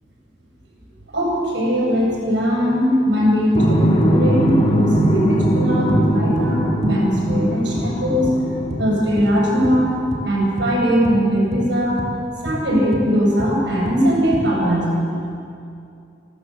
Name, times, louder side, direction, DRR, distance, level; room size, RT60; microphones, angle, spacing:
voice 1, 1.1-8.3 8.8-9.9 10.2-12.0 12.4-15.0, equal, 75° right, -2 dB, 7.4 m, -19 dB
sound 1, 3.2-3.3 3.5-4.2 4.5-5.2 5.4-5.6 5.9-6.1 6.4-7.0 7.3-8.5 8.7-9.4 9.6-10.3 10.6-10.8 11.0-11.7 12.0-12.7 12.9-13.1 13.4-13.6 13.9-14.5, equal, 40° right, 1.8 m, -29 dB
sound 2, 3.5-10.1, equal, 35° left, 2.7 m, -20 dB
28.5 x 13.0 x 7.5 m, 2.5 s
head